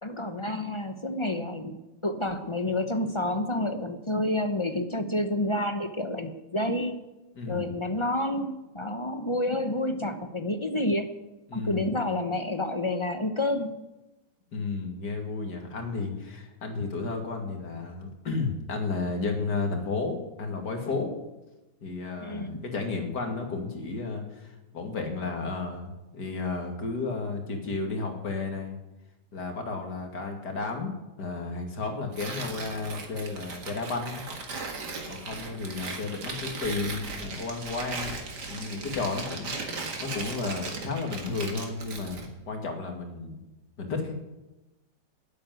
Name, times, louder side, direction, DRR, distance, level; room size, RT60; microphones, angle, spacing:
voice 1, 0.0-1.8 2.0-7.0 7.5-11.1 11.5-13.8 22.2-22.6, left 1 dB, 25° left, 7 dB, 0.6 m, -29 dB
voice 2, 7.4-7.7 11.5-11.9 14.5-21.1 21.8-28.8 29.3-30.9 31.2-34.2 35.1-38.2 38.5-43.4 43.8-44.1, left 3 dB, 70° left, 3 dB, 2.7 m, -33 dB
Tearing, 32.1-42.3, right 3 dB, 75° right, 2.5 m, -37 dB
13.0 x 8.6 x 9.2 m, 1.0 s
omnidirectional pair, 1.8 m